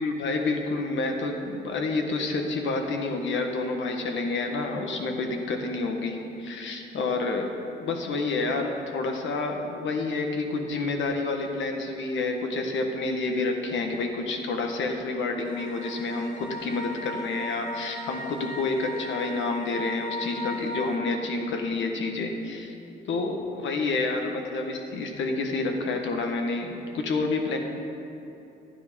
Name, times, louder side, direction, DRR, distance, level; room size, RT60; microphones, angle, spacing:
voice 1, 0.0-7.5 7.8-22.7 23.1-27.6, left 3 dB, 70° left, 3 dB, 1.5 m, -29 dB
sound 1, 15.4-21.0, left 1 dB, 35° left, 1.6 m, -37 dB
12.5 x 9.4 x 5.2 m, 3.0 s
cardioid pair, 90°, 20 cm